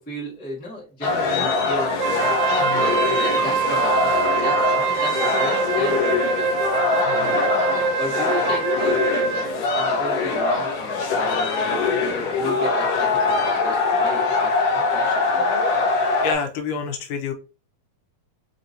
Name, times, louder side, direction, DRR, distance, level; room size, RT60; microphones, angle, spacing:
voice 1, 0.0-2.2 2.7-4.1 4.4-6.4 7.1-7.5 7.9-15.5, left 1 dB, 10° left, -5 dB, 0.6 m, -34 dB
sound 1, 1.0-16.3, left 4 dB, 70° left, 1.6 m, -23 dB
Wind instrument woodwind instrument, 2.0-9.6, right 6 dB, 75° right, 1.8 m, -24 dB
voice 2, 2.6-2.9 7.1-7.4 16.2-17.3, left 5 dB, 85° left, 6 dB, 2.3 m, -28 dB
5.5 x 2.8 x 2.6 m, 0.32 s
omnidirectional pair, 3.7 m